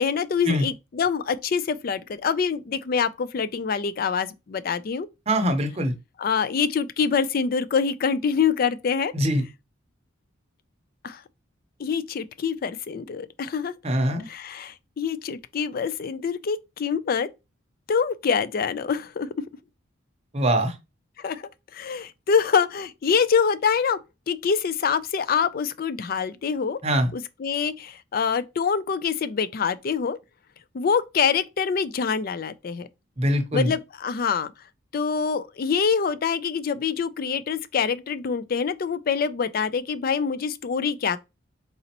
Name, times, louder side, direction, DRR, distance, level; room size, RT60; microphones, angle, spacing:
voice 1, 0.0-5.1 6.2-9.1 11.0-11.2 11.8-13.7 14.3-17.3 17.9-19.3 21.2-24.0 24.3-26.8 27.1-30.2 30.7-32.9 33.5-34.5 34.9-41.2, left 6 dB, 45° left, 0.3 m, -25 dB
voice 2, 5.3-5.9 9.1-9.4 13.8-14.3 20.3-20.7 26.8-27.1 33.2-33.7, equal, 30° right, 0.8 m, -22 dB
4.1 x 3.9 x 2.9 m
head